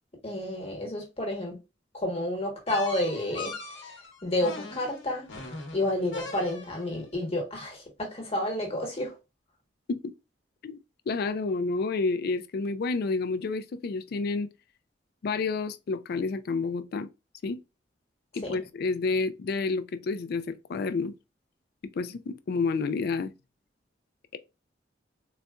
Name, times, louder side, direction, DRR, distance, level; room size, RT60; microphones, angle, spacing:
voice 1, 0.2-1.6 1.9-3.9 4.2-5.3 5.7-9.1 18.4-18.5, left 1 dB, 35° left, 1.2 m, -30 dB
sound 1, 2.7-7.0, left 3 dB, 75° left, 0.9 m, -40 dB
voice 2, 11.1-14.5 15.2-17.1 17.4-17.6 18.3-21.1 21.9-23.3 24.3-24.4, left 4 dB, 55° left, 0.3 m, -29 dB
4.0 x 2.2 x 2.3 m
head